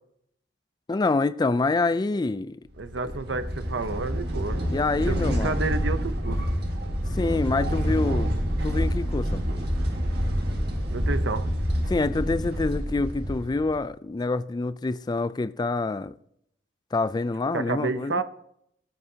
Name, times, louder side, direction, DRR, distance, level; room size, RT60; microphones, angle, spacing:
voice 1, 0.9-2.6 4.7-5.6 7.1-8.3 8.6-9.4 11.9-16.1 16.9-18.2, left 3 dB, 25° left, 0.3 m, -26 dB
sound 1, 2.8-13.8, equal, 60° right, 1.9 m, -27 dB
voice 2, 2.8-4.6 5.1-6.4 10.9-11.5 17.5-18.2, right 3 dB, 80° right, 0.7 m, -30 dB
15.5 x 8.1 x 2.8 m
head